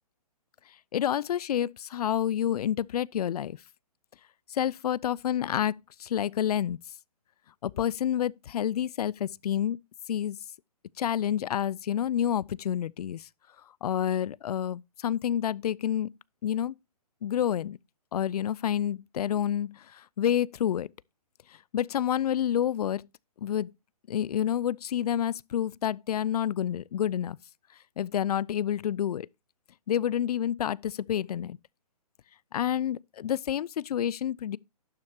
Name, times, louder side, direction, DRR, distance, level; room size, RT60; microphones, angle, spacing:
voice 1, 0.9-3.6 4.5-6.8 7.6-9.8 10.1-10.4 11.0-13.3 13.8-16.1 16.4-16.7 17.2-17.8 18.1-20.9 21.7-23.0 23.4-23.7 24.1-27.4 28.0-29.3 29.9-31.6 32.5-34.6, left 10 dB, 70° left, 0.4 m, -28 dB
11.5 x 7.5 x 2.8 m
hypercardioid pair, 155°, 20 cm